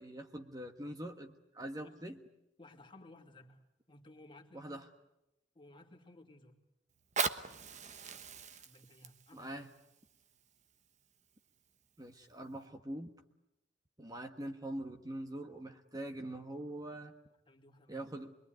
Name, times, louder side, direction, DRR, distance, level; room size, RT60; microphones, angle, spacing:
voice 1, 0.0-2.2 4.5-4.8 9.3-9.7 12.0-13.1 14.0-17.1 17.9-18.4, right 1 dB, 20° right, 5 dB, 1.4 m, -43 dB
voice 2, 2.6-4.8 5.5-6.6 8.5-9.6 17.5-18.1, left 2 dB, 25° left, 3 dB, 2.6 m, -58 dB
Fire, 6.9-11.9 12.5-12.6, right 6 dB, 40° right, 1.2 m, -41 dB
27.0 x 22.0 x 9.3 m, 0.87 s
head